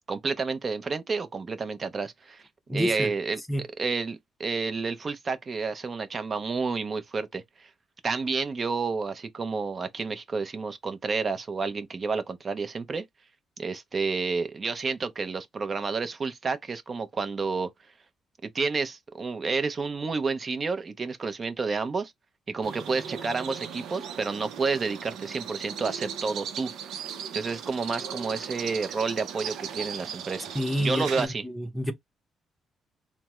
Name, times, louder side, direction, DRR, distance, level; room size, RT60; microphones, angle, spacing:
voice 1, 0.1-2.4 2.7-7.7 8.0-13.0 13.6-17.7 18.4-22.1 22.5-26.7 27.3-31.4, right 4 dB, 40° right, 0.5 m, -30 dB
voice 2, 2.7-3.1 3.5-3.6 30.5-31.9, equal, 10° left, 0.7 m, -28 dB
sound 1, 22.6-31.3, right 8 dB, 80° right, 0.6 m, -37 dB
3.4 x 2.0 x 2.9 m
cardioid pair, 90°, 0 cm